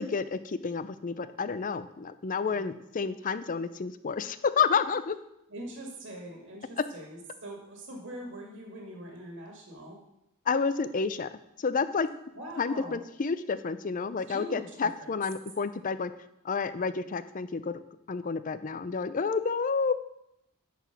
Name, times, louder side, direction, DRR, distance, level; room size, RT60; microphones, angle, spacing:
voice 1, 0.0-5.2 10.5-11.3 11.6-12.1 12.6-16.1 16.4-17.8 18.1-19.9, left 5 dB, 35° left, 13 dB, 0.4 m, -30 dB
voice 2, 5.5-10.0 12.4-13.0 14.3-14.7 15.0-15.1, right 1 dB, 55° right, 0 dB, 1.8 m, -42 dB
10.0 x 4.9 x 5.8 m, 0.83 s
head